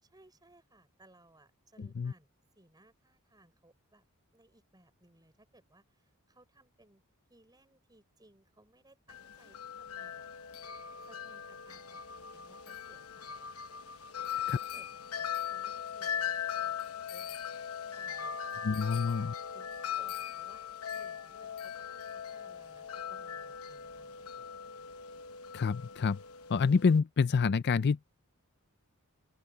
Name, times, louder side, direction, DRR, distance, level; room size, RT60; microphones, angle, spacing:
voice 1, 0.1-2.3 2.5-4.0 4.3-7.0 7.3-10.3 11.0-13.7 14.1-14.9 15.1-17.4 18.0-18.7 18.9-24.8, right 1 dB, 20° right, 5.5 m, -63 dB
Wind chime, 9.1-27.0, left 8 dB, 70° left, 1.0 m, -40 dB
voice 2, 18.6-19.3 25.5-26.2 26.5-28.1, left 5 dB, 50° left, 0.4 m, -27 dB
open air
head